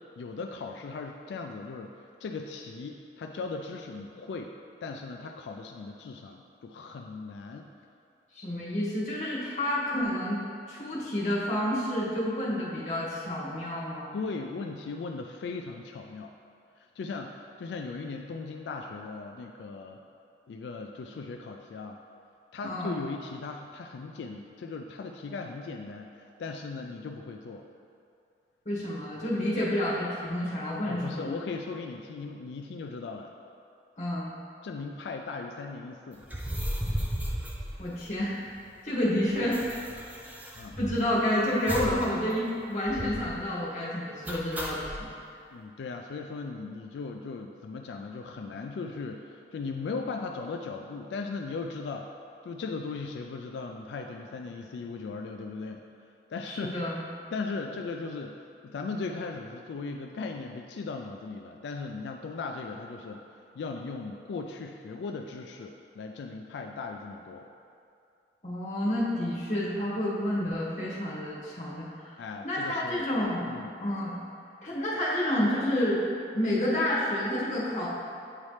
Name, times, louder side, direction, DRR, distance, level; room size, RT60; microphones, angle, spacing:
voice 1, 0.0-4.5 4.8-7.7 14.1-16.3 16.8-20.0 20.5-22.0 22.5-27.6 30.8-33.3 34.6-36.2 40.6-40.8 45.5-52.1 52.4-55.8 56.3-56.8 57.3-67.5 72.2-73.1 73.5-73.8, left 4 dB, 85° left, 3 dB, 0.3 m, -38 dB
voice 2, 8.3-14.1 22.6-23.0 28.6-31.4 34.0-34.3 37.8-38.3 38.8-39.6 40.8-45.1 56.5-57.0 68.4-72.1 72.4-73.5 73.8-74.2 74.6-76.0 76.3-77.9, left 1 dB, 40° left, -7 dB, 1.4 m, -29 dB
sound 1, 36.2-38.5 38.8-38.9 39.1-41.2 41.7-42.1 42.4-42.5 42.9-43.3 44.3-45.0, equal, 10° right, 0.4 m, -34 dB
8.8 x 4.1 x 3.2 m, 2.5 s
head